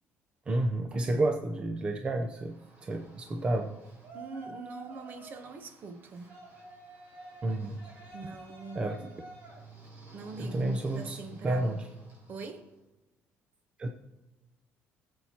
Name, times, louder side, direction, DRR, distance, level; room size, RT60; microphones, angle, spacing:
voice 1, 0.5-3.8 7.4-7.8 8.7-9.1 10.4-11.9 13.8-13.9, right 2 dB, 25° right, 0.6 m, -31 dB
Yell, 2.4-12.6, right 2 dB, 60° right, 4.0 m, -50 dB
voice 2, 4.1-6.4 8.1-9.1 10.1-11.8 12.3-12.7, right 4 dB, 45° right, 0.9 m, -43 dB
20.5 x 7.8 x 2.9 m
cardioid pair, 155°, 5 cm